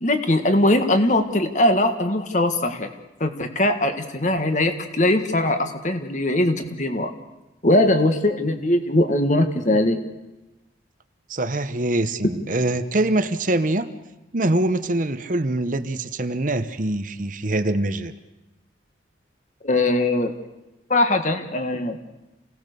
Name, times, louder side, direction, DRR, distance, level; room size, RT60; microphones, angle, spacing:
voice 1, 0.0-2.9 3.2-7.1 7.6-10.0 19.6-20.3 20.9-22.0, left 1 dB, 40° left, 7 dB, 1.8 m, -20 dB
voice 2, 11.3-13.9 14.3-18.1, right 2 dB, 45° right, 10 dB, 1.0 m, -24 dB
28.5 x 18.0 x 6.8 m, 1.0 s
head